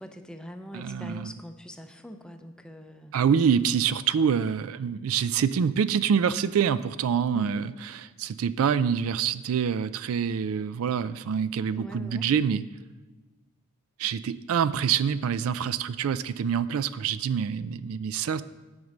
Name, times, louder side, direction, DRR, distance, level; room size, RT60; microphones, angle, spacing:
voice 1, 0.0-3.2 7.3-7.7 11.8-12.3, equal, 5° left, 6 dB, 0.6 m, -43 dB
voice 2, 0.7-1.3 3.1-12.6 14.0-18.4, right 7 dB, 70° right, 15 dB, 0.3 m, -26 dB
9.6 x 5.2 x 7.1 m, 1.2 s
head